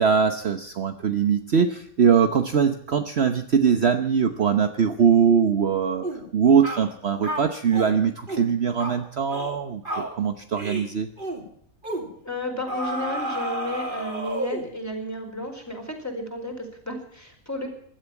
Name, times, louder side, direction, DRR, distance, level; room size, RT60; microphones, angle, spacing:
voice 1, 0.0-6.1 6.3-11.1, right 7 dB, 50° right, 8 dB, 1.1 m, -21 dB
sound 1, 6.0-6.2 6.6-6.9 7.2-7.9 8.3-8.5 8.8-9.0 9.3-9.6 9.8-10.1 10.6-10.9 11.2-11.4 11.8-12.1 12.7-14.7, right 1 dB, 35° right, 3.2 m, -31 dB
voice 2, 12.2-17.7, left 1 dB, 10° left, 3 dB, 4.7 m, -33 dB
16.0 x 12.5 x 7.1 m, 0.65 s
omnidirectional pair, 1.5 m